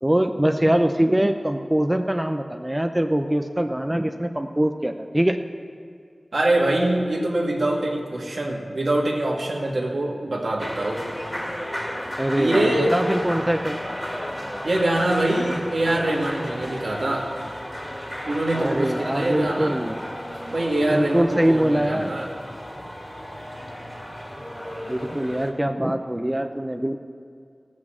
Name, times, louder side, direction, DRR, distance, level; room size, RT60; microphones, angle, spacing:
voice 1, 0.0-5.4 12.2-13.8 18.5-20.0 20.9-22.1 24.9-27.0, right 1 dB, 15° right, 6 dB, 0.6 m, -23 dB
voice 2, 6.3-11.0 12.4-13.0 14.6-17.3 18.2-19.7 20.5-22.3, right 1 dB, 75° right, -1 dB, 1.9 m, -24 dB
sound 1, 10.6-25.5, equal, 10° left, 2.1 m, -33 dB
15.5 x 6.2 x 7.6 m, 2.3 s
wide cardioid pair, 50°, 0 cm